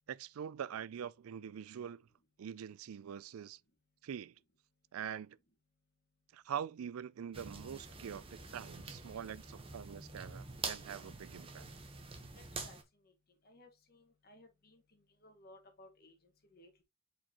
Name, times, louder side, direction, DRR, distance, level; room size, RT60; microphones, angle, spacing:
voice 1, 0.1-2.1 2.4-3.6 4.0-4.3 4.9-5.4 6.3-11.7, right 8 dB, 85° right, 0.4 m, -44 dB
sound 1, 7.3-12.8, right 4 dB, 25° right, 1.0 m, -46 dB
voice 2, 12.3-12.8 13.0-13.1 13.4-16.8, left 1 dB, 45° left, 1.6 m, -61 dB
7.7 x 4.4 x 2.9 m
head